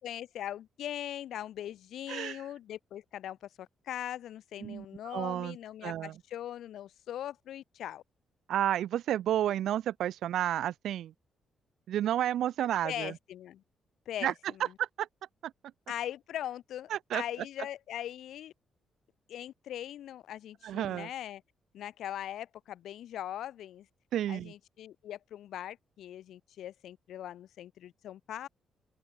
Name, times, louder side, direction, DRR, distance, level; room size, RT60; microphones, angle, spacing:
voice 1, 0.0-8.0 12.8-13.6 14.0-14.8 15.9-18.5 19.3-21.4 21.7-23.9 24.3-28.5, left 11 dB, 75° left, 6.7 m, -40 dB
voice 2, 5.1-5.6 5.8-6.1 8.5-11.1 11.9-13.1 14.2-14.3 14.8-15.1 16.9-17.2 20.6-21.1 24.1-24.5, right 11 dB, 75° right, 1.2 m, -31 dB
open air
cardioid pair, 155°, 0 cm